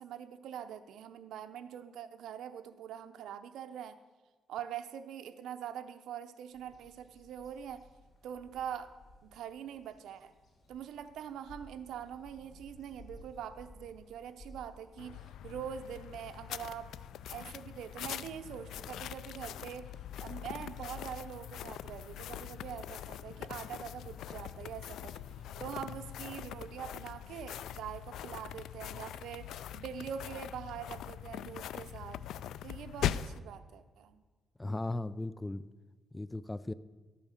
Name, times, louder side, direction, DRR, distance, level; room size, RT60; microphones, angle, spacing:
voice 1, 0.0-4.0 4.5-7.8 8.2-8.9 9.2-10.3 10.7-16.9 17.3-19.9 20.2-25.2 25.6-32.2 32.6-34.2, right 9 dB, 90° right, 11 dB, 0.8 m, -44 dB
Bird vocalization bird call bird song, 6.5-19.8, left 1 dB, 55° left, 5.3 m, -58 dB
sound 1, 15.0-33.4, left 10 dB, 90° left, 0.3 m, -42 dB
voice 2, 34.6-35.6 36.1-36.7, left 2 dB, 10° left, 16 dB, 0.4 m, -37 dB
12.5 x 8.9 x 6.5 m, 1.3 s
cardioid pair, 110°, 0 cm